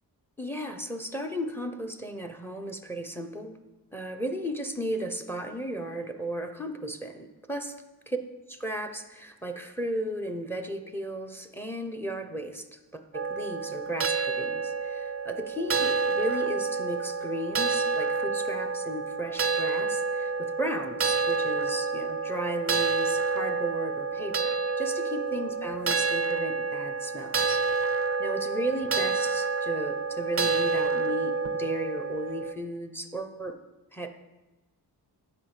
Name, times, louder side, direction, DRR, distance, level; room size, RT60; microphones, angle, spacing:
voice 1, 0.4-3.6 3.9-7.7 8.1-8.2 8.6-33.6 33.9-34.1, right 1 dB, 5° left, 7 dB, 1.0 m, -35 dB
sound 1, 13.1-32.5, right 4 dB, 35° right, 0.5 m, -29 dB
11.0 x 5.1 x 8.2 m, 1.1 s
wide cardioid pair, 120°, 40 cm